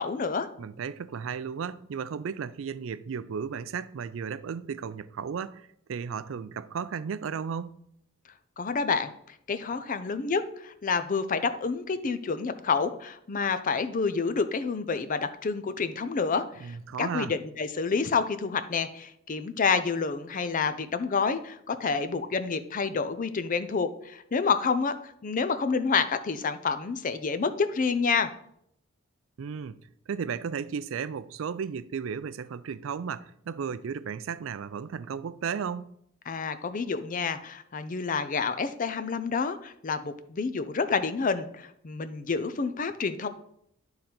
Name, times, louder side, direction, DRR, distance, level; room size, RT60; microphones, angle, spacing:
voice 1, 0.0-0.5 8.6-9.1 9.5-24.9 25.2-28.3 36.3-43.3, left 5 dB, 40° left, 0.5 m, -28 dB
voice 2, 0.6-7.7 16.6-17.3 29.4-29.8 30.1-35.9, right 6 dB, 65° right, 0.4 m, -34 dB
11.5 x 3.8 x 4.3 m
head